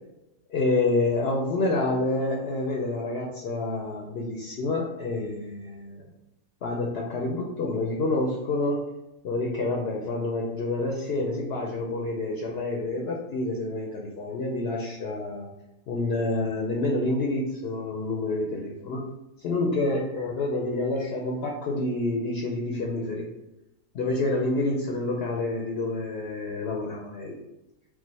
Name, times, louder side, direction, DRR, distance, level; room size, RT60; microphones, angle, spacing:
voice 1, 0.5-6.0 6.6-8.9 9.2-15.5 15.9-19.0 19.4-23.3 23.9-27.4, left 2 dB, 60° left, -1 dB, 0.7 m, -28 dB
4.8 x 2.1 x 4.0 m, 0.91 s
omnidirectional pair, 1.6 m